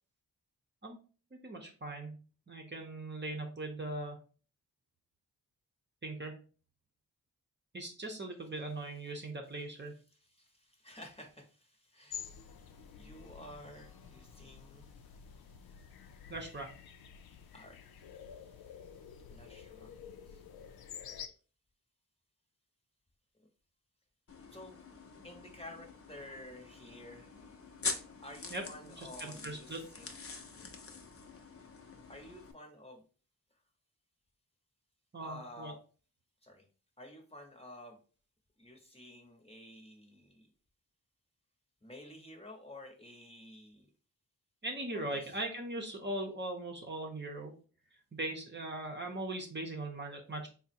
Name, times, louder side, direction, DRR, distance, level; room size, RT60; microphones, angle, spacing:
voice 1, 1.3-4.2 6.0-6.4 7.7-9.9 16.3-16.7 28.5-29.8 35.1-35.7 44.6-47.5 48.1-50.5, right 2 dB, 30° right, 2 dB, 0.8 m, -40 dB
voice 2, 10.2-16.3 17.1-19.9 20.3-20.4 24.5-24.8 25.2-27.3 28.2-30.1 32.1-33.0 35.2-35.7 36.4-36.7 37.0-38.0 38.6-40.5 41.8-43.9 44.9-45.3, left 1 dB, 15° left, 0 dB, 1.0 m, -52 dB
sound 1, 12.1-21.3, left 7 dB, 85° left, 0.5 m, -50 dB
sound 2, 24.3-32.5, left 4 dB, 40° left, 0.7 m, -45 dB
3.6 x 2.1 x 4.2 m, 0.38 s
cardioid pair, 70°, 36 cm